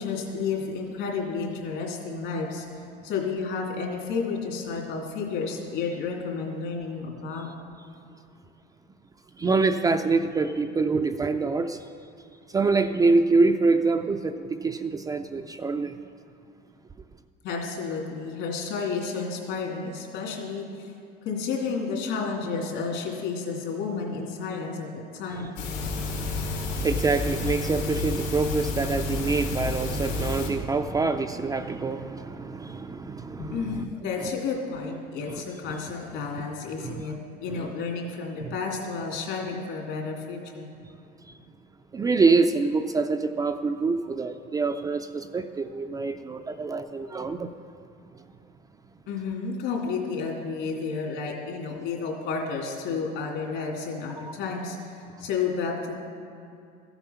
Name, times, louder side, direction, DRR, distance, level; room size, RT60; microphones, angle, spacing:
voice 1, 0.0-2.6 3.0-7.5 17.4-20.9 21.2-25.6 33.4-40.7 49.1-56.0, left 5 dB, 65° left, 0 dB, 2.7 m, -31 dB
voice 2, 9.4-11.8 12.5-16.0 25.8-33.7 36.4-36.5 36.8-37.0 37.5-37.6 38.4-38.5 41.9-47.5 54.2-54.3, right 3 dB, 20° right, 7 dB, 0.4 m, -25 dB
sound 1, 25.6-30.5, left 3 dB, 85° left, 2.8 m, -30 dB
13.5 x 8.0 x 5.7 m, 2.5 s
supercardioid pair, 115°, 21 cm